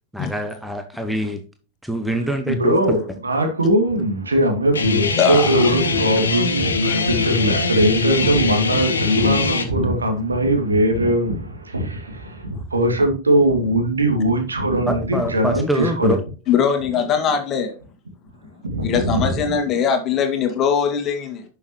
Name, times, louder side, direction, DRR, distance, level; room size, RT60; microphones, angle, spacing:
voice 1, 0.1-1.4 1.8-3.0 14.9-16.2, right 1 dB, ahead, 1.1 m, -25 dB
voice 2, 2.4-16.2 18.6-19.3, right 1 dB, 75° right, 2.4 m, -20 dB
Guitar, 4.7-9.6, left 4 dB, 70° left, 1.6 m, -22 dB
voice 3, 5.2-5.7 6.9-7.1 16.5-17.7 18.8-21.4, left 7 dB, 30° left, 2.1 m, -21 dB
11.0 x 6.5 x 3.1 m
figure-of-eight pair, 90°, 0 cm